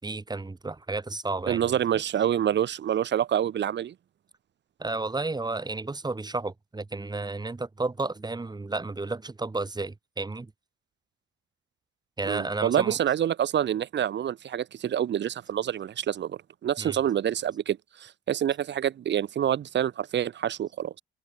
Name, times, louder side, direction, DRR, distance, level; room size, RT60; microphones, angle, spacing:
voice 1, 0.0-1.8 4.8-10.5 12.2-13.0 16.8-17.0, right 3 dB, 20° right, 8.0 m, -32 dB
voice 2, 1.5-3.9 12.2-21.0, right 10 dB, 65° right, 2.4 m, -27 dB
open air
cardioid pair, 90°, 20 cm